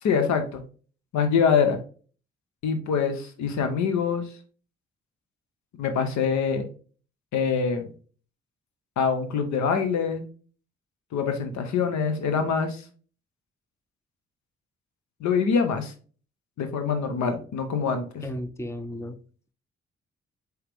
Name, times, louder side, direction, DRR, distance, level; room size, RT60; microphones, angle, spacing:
voice 1, 0.0-0.6 1.1-1.8 2.6-4.3 5.8-6.6 7.3-7.9 9.0-10.3 11.1-12.8 15.2-15.9 16.6-18.2, left 6 dB, 70° left, 7 dB, 0.8 m, -24 dB
voice 2, 18.2-19.2, left 1 dB, 10° left, 9 dB, 0.7 m, -34 dB
4.8 x 3.2 x 3.4 m, 0.40 s
hypercardioid pair, 40°, 30 cm